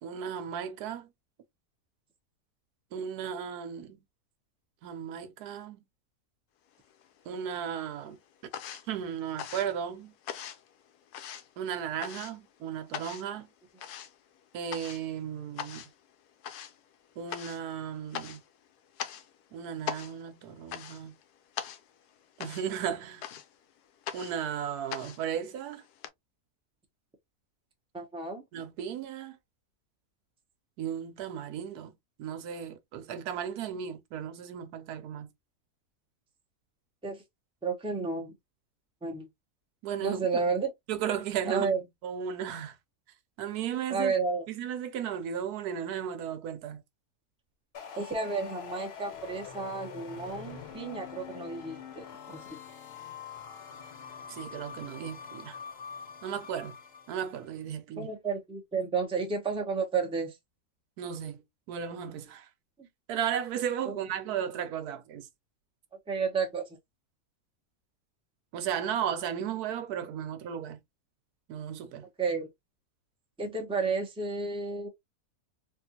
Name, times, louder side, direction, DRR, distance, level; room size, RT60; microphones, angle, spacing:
voice 1, 0.0-1.1 2.9-4.0 4.8-5.8 7.3-8.2 8.9-10.1 11.6-13.5 14.5-15.8 17.2-18.4 19.5-21.1 22.4-23.2 24.1-25.8 28.5-29.4 30.8-31.9 32.2-35.3 39.8-40.3 40.9-42.8 43.4-44.1 44.5-46.8 54.3-55.6 56.2-56.8 57.1-58.1 61.0-61.4 61.7-62.5 63.1-65.3 68.5-70.8 71.5-72.1, right 9 dB, 85° right, 1.2 m, -35 dB
sound 1, 6.7-7.5 7.8-26.1, left 9 dB, 90° left, 1.2 m, -42 dB
voice 2, 27.9-28.4 37.0-37.2 37.6-38.3 39.0-39.3 40.0-40.7 41.5-41.8 43.9-44.5 48.0-52.6 57.9-60.4 62.8-62.9 63.9-64.0 66.1-66.6 72.2-72.5 73.4-74.9, right 4 dB, 5° right, 0.6 m, -31 dB
sound 2, 47.7-57.4, left 7 dB, 50° left, 0.8 m, -44 dB
3.6 x 2.4 x 2.7 m
omnidirectional pair, 1.6 m